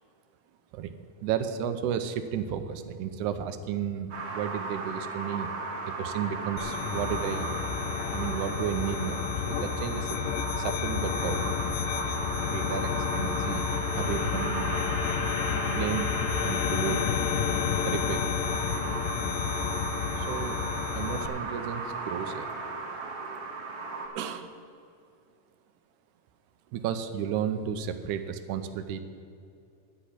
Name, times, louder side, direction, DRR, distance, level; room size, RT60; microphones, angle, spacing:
voice 1, 1.2-5.5 6.0-7.5 8.1-10.2 10.6-11.4 12.5-13.7 14.0-14.7 15.7-17.0 17.8-18.3 20.2-20.6 20.9-22.5 24.2-24.6 26.7-29.0, right 8 dB, 75° right, 9 dB, 2.0 m, -33 dB
sound 1, 4.1-24.1, right 3 dB, 50° right, 2.3 m, -36 dB
sound 2, 6.6-21.3, left 9 dB, 90° left, 2.2 m, -31 dB
sound 3, 13.0-20.1, left 2 dB, 65° left, 0.9 m, -36 dB
11.0 x 6.0 x 8.4 m, 2.5 s
omnidirectional pair, 3.8 m